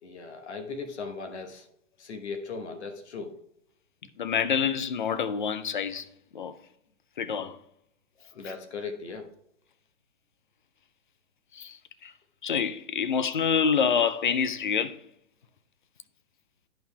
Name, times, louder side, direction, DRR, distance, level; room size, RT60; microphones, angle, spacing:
voice 1, 0.0-1.7 2.0-3.4 8.3-9.3, left 4 dB, 55° left, 1.2 m, -38 dB
voice 2, 4.2-6.1 6.3-6.5 7.2-7.6 11.6-11.8 12.0-12.1 12.4-15.0, left 7 dB, 40° left, 0.4 m, -27 dB
10.5 x 5.4 x 2.3 m
figure-of-eight pair, 130°, 40 cm